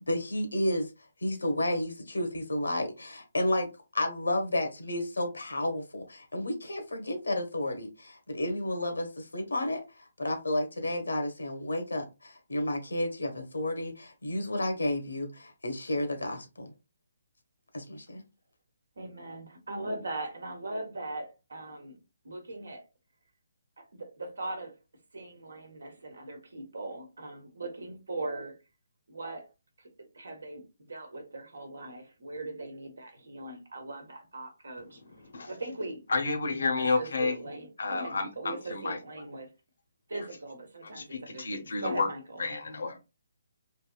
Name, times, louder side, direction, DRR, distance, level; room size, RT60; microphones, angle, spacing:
voice 1, 0.1-0.9 1.2-3.7 3.9-16.7 17.7-18.2, left 1 dB, 90° left, 1.1 m, -31 dB
voice 2, 19.0-22.0 22.2-22.8 23.8-24.8 25.1-28.6 29.1-29.5 29.8-29.9 30.1-35.0 35.4-36.0 36.5-39.5 40.1-42.4, right 2 dB, 80° right, 1.1 m, -40 dB
voice 3, 36.1-37.4 37.8-39.0 40.9-42.1 42.4-43.0, left 3 dB, 70° left, 0.8 m, -30 dB
3.4 x 2.7 x 2.3 m
hypercardioid pair, 145°, 0 cm